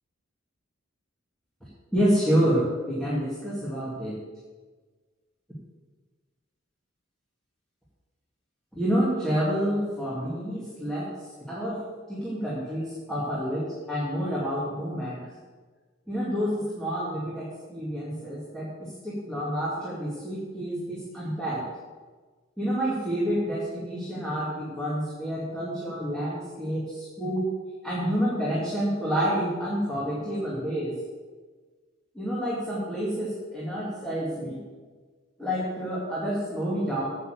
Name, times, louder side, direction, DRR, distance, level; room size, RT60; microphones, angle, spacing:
voice 1, 1.9-4.2 8.8-11.1 11.5-11.8 12.1-15.3 16.1-21.6 22.6-27.5 27.8-31.0 32.1-34.6 35.4-37.1, equal, 5° left, -8 dB, 2.4 m, -28 dB
9.1 x 6.8 x 7.8 m, 1.4 s
head